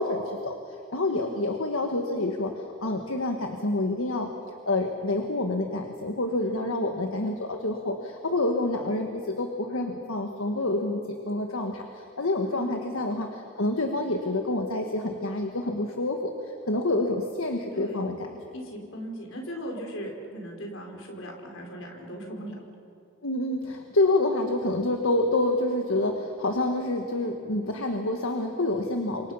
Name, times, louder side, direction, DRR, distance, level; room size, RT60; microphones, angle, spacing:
voice 1, 0.0-4.3 4.6-18.1 23.2-29.3, left 2 dB, 85° left, 4 dB, 1.7 m, -28 dB
voice 2, 1.0-1.4 6.4-6.8 12.5-12.8 17.7-18.1 18.5-22.6, equal, 70° left, 1 dB, 4.7 m, -38 dB
29.5 x 25.5 x 5.7 m, 2.5 s
head